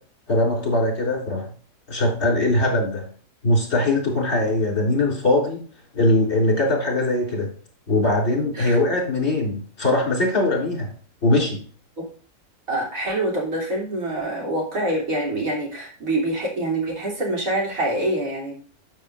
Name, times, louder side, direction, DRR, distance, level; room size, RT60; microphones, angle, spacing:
voice 1, 0.3-1.5 1.9-3.0 3.4-5.6 5.9-7.5 7.9-10.9 11.2-11.6, left 2 dB, 55° left, 0 dB, 3.9 m, -21 dB
voice 2, 8.5-9.0 12.0-12.1 12.7-18.5, right 1 dB, 80° right, -3 dB, 3.8 m, -25 dB
12.5 x 6.7 x 2.6 m, 0.43 s
omnidirectional pair, 1.4 m